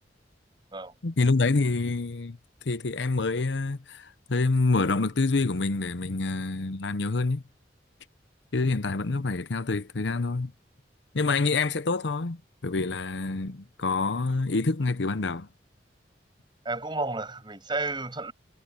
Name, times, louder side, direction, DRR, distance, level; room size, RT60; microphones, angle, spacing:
voice 1, 1.0-2.4 2.7-7.4 8.5-10.5 11.1-15.5, left 3 dB, 80° left, 0.8 m, -27 dB
voice 2, 16.6-18.3, right 2 dB, 25° right, 6.9 m, -31 dB
head